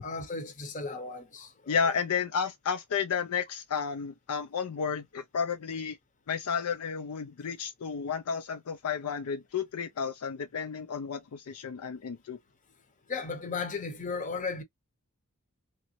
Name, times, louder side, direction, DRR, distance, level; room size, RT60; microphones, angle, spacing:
voice 1, 0.0-1.7 13.1-14.6, left 4 dB, 35° left, 0.8 m, -35 dB
voice 2, 1.7-6.0 6.3-12.4, left 6 dB, 70° left, 0.4 m, -32 dB
3.0 x 3.0 x 2.8 m
head